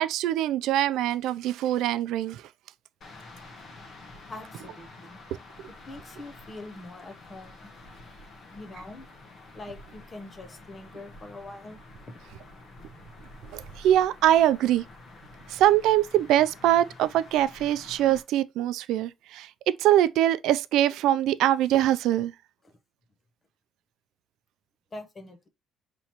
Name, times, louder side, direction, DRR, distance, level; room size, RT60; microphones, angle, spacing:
voice 1, 0.0-2.4 13.5-14.8 15.5-19.5 19.8-22.3, right 12 dB, 75° right, 0.4 m, -23 dB
sound 1, 3.0-18.2, left 2 dB, 40° left, 1.0 m, -48 dB
voice 2, 4.3-5.2 5.7-7.7 8.5-9.1 9.5-11.8 12.1-12.2 22.6-22.8 24.9-25.5, left 2 dB, 20° left, 0.7 m, -43 dB
5.6 x 3.0 x 3.0 m
cardioid pair, 160°, 0 cm